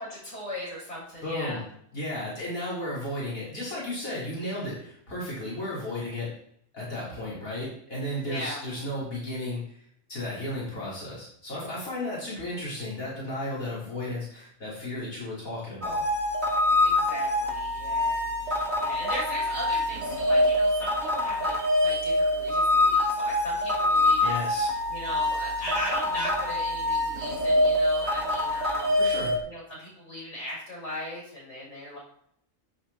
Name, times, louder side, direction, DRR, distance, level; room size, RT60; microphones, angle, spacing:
voice 1, 0.0-1.6 8.1-8.6 16.8-21.5 21.8-24.4 24.9-29.0 29.4-32.0, equal, 55° left, -4 dB, 6.5 m, -38 dB
voice 2, 1.2-1.6 1.9-6.3 6.7-16.0 24.2-24.7 29.0-29.3, left 1 dB, 90° left, -7 dB, 4.7 m, -34 dB
sound 1, 15.8-29.4, left 1 dB, 50° right, 2.5 m, -25 dB
14.5 x 8.5 x 4.4 m, 0.70 s
omnidirectional pair, 1.4 m